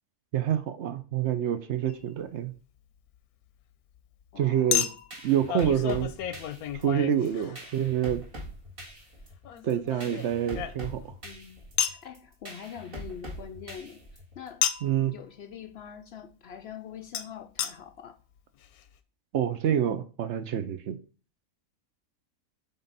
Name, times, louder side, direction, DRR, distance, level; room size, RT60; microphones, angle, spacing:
voice 1, 0.3-2.5 4.4-4.8 5.2-6.1 6.8-8.2 9.6-11.0 14.8-15.1 19.3-21.0, right 10 dB, 60° right, 0.8 m, -27 dB
Chink clink, 1.9-2.0 4.7-7.9 9.4-11.1 11.8-12.1 14.6-15.0 17.1-17.2 17.6-17.7 18.4-18.5 18.6-18.7, left 10 dB, 90° left, 1.1 m, -31 dB
voice 2, 4.3-4.9 11.2-14.7 15.1-18.1, left 8 dB, 65° left, 0.6 m, -44 dB
sound 1, 4.8-14.5, equal, 40° right, 2.1 m, -43 dB
7.8 x 3.7 x 4.0 m
omnidirectional pair, 1.5 m